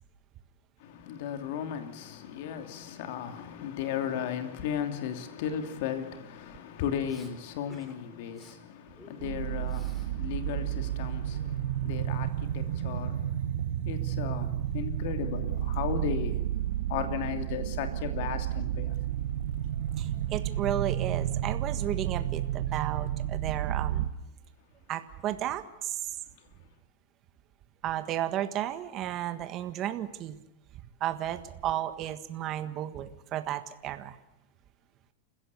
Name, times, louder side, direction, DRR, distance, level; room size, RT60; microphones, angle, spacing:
voice 1, 1.1-8.6 9.1-9.9 10.2-11.4 11.8-13.2 13.9-14.5 14.7-16.3 16.9-18.9, left 9 dB, 60° left, 2.8 m, -35 dB
Respiratory sounds, 7.1-7.3 7.7-8.0 8.3-8.6 9.0-10.1 10.4-11.8, left 1 dB, 10° left, 4.2 m, -55 dB
sound 1, 9.2-24.1, right 12 dB, 80° right, 1.7 m, -31 dB
voice 2, 20.0-24.1 24.9-26.0 27.8-30.4 31.0-34.2, right 12 dB, 35° right, 1.6 m, -33 dB
29.0 x 16.0 x 8.5 m
supercardioid pair, 145°, 0 cm